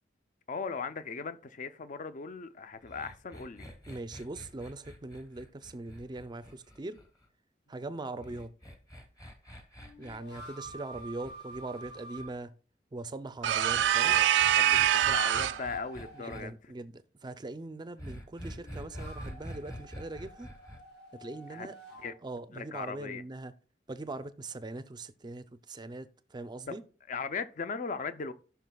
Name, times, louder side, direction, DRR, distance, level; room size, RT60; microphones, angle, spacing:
voice 1, 0.5-3.7 13.6-16.7 21.5-21.7 22.0-22.1 22.5-23.2 26.7-26.8 27.1-28.3, left 5 dB, 45° left, 0.5 m, -38 dB
sound 1, 2.8-7.3 8.2-12.3 13.7-16.4 18.0-20.8, equal, 20° left, 1.0 m, -46 dB
voice 2, 3.9-7.0 7.7-8.5 10.0-12.5 12.9-14.2 16.1-20.5 21.1-21.7 22.2-23.5 23.9-26.8, right 2 dB, 25° right, 0.5 m, -41 dB
sound 2, 7.7-7.8 9.8-12.2 14.6-16.4 18.5-22.1, right 2 dB, 70° left, 3.6 m, -49 dB
sound 3, 13.4-15.7, right 12 dB, 90° right, 0.4 m, -24 dB
16.5 x 5.7 x 2.3 m
head